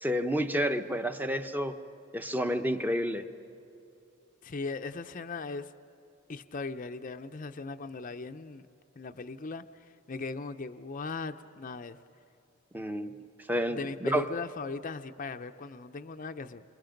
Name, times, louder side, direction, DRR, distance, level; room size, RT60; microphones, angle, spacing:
voice 1, 0.0-1.7 2.1-3.2 12.7-13.1 13.5-14.2, equal, 10° right, 8 dB, 0.8 m, -30 dB
voice 2, 4.4-5.7 6.3-8.7 9.0-12.0 13.2-13.3 13.7-16.6, left 3 dB, 40° left, 7 dB, 0.6 m, -38 dB
28.0 x 26.5 x 5.2 m, 2.7 s
head